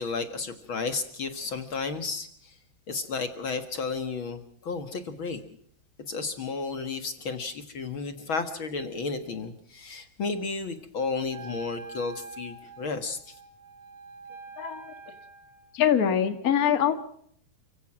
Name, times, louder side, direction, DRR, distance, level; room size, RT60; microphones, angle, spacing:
voice 1, 0.0-2.5 2.9-5.5 6.1-13.4, left 4 dB, 55° left, 9 dB, 1.4 m, -33 dB
Wind instrument woodwind instrument, 11.3-15.8, right 3 dB, 70° right, 6.4 m, -45 dB
voice 2, 14.6-14.9 15.7-16.9, left 9 dB, 70° left, 8 dB, 0.8 m, -23 dB
29.5 x 16.5 x 6.1 m, 0.65 s
omnidirectional pair, 4.7 m